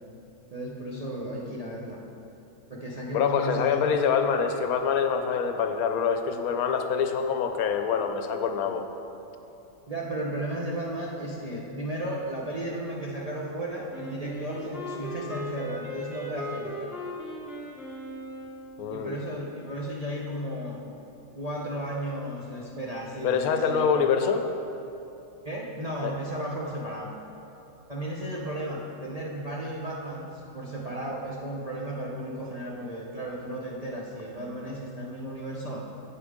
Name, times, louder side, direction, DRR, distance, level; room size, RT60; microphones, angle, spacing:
voice 1, 0.5-2.0 2.7-4.1 9.9-16.9 18.9-20.8 21.3-23.9 25.4-27.1 27.9-35.8, right 1 dB, 40° right, -4 dB, 0.6 m, -34 dB
voice 2, 3.1-8.9 18.8-19.1 23.2-24.4 26.0-26.2, left 6 dB, 75° left, 6 dB, 1.0 m, -25 dB
Wind instrument woodwind instrument, 13.9-19.0, equal, ahead, 0.7 m, -38 dB
9.6 x 7.6 x 3.6 m, 2.9 s
omnidirectional pair, 1.6 m